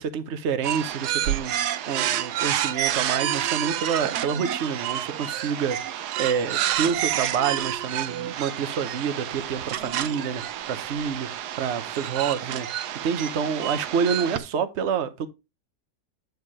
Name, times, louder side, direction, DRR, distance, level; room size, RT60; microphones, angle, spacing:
voice 1, 0.0-1.5 1.9-11.3 11.6-12.7 13.0-15.3, right 7 dB, 50° right, 1.0 m, -28 dB
sound 1, 0.6-14.4, right 11 dB, 65° right, 1.2 m, -29 dB
9.3 x 4.8 x 4.7 m
omnidirectional pair, 2.0 m